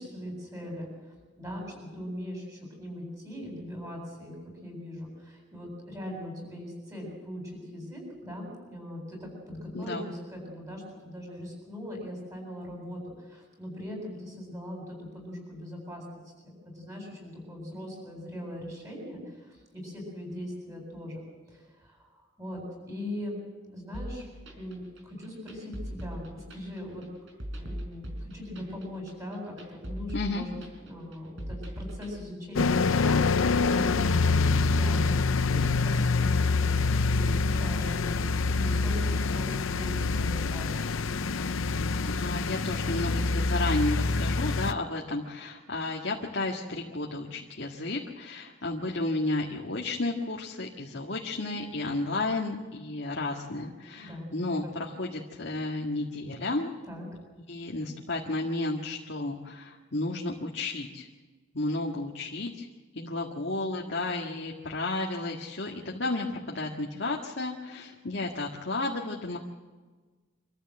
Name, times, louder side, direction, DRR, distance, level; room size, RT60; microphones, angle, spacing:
voice 1, 0.0-4.3 4.6-21.2 21.5-23.4 23.7-24.3 24.5-27.0 27.5-38.3 38.5-40.9 53.9-54.3 56.9-57.1, left 1 dB, 15° right, 0 dB, 8.0 m, -40 dB
voice 2, 9.7-10.1 30.1-30.4 42.0-56.7 57.5-61.1 61.5-62.7 62.9-69.4, left 2 dB, 60° left, -1 dB, 1.8 m, -32 dB
sound 1, 23.9-32.1, equal, 70° right, 4.7 m, -40 dB
sound 2, 32.6-44.7, left 4 dB, 85° left, 0.7 m, -26 dB
26.0 x 14.5 x 7.9 m, 1.3 s
head